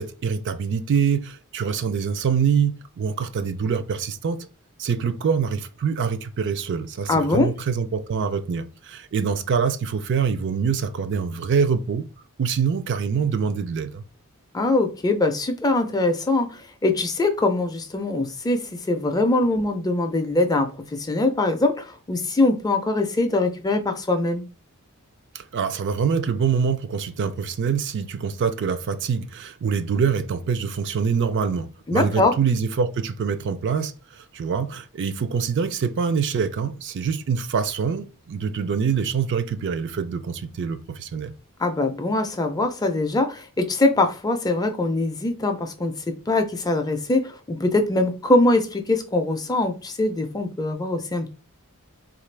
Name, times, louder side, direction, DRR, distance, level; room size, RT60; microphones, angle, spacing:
voice 1, 0.0-4.5 4.8-12.0 12.4-14.0 25.3-41.3, right 6 dB, 55° right, 0.4 m, -25 dB
voice 2, 7.1-7.5 14.5-24.4 31.9-32.3 41.6-51.3, left 2 dB, 15° left, 0.4 m, -22 dB
3.6 x 2.4 x 3.2 m
head